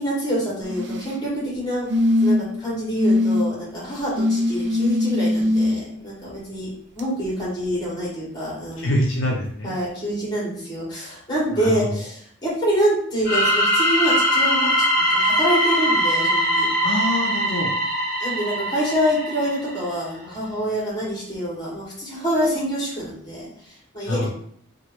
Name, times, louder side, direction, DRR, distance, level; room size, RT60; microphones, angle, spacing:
voice 1, 0.0-1.9 2.2-6.7 6.9-8.9 9.6-16.7 18.2-24.3, equal, 20° left, -6 dB, 1.4 m, -26 dB
sound 1, 0.6-1.2 1.9-2.6 3.0-3.4 4.1-5.7 7.0-7.1, left 1 dB, 60° right, 0.4 m, -21 dB
voice 2, 8.8-9.7 11.5-12.0 16.8-17.7 24.1-24.3, left 1 dB, 70° left, -1 dB, 0.5 m, -25 dB
sound 2, 13.2-19.9, equal, 45° left, 1.0 m, -21 dB
2.9 x 2.5 x 3.0 m, 0.63 s
head